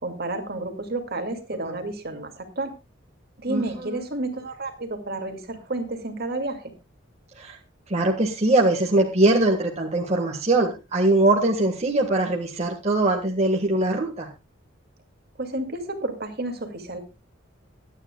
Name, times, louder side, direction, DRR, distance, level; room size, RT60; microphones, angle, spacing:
voice 1, 0.0-2.7 3.4-6.7 15.4-17.0, right 2 dB, 50° right, 5 dB, 2.3 m, -31 dB
voice 2, 3.5-4.0 7.4-7.6 7.9-14.3, right 2 dB, 35° right, 0 dB, 1.6 m, -22 dB
24.0 x 9.6 x 2.3 m, 0.27 s
head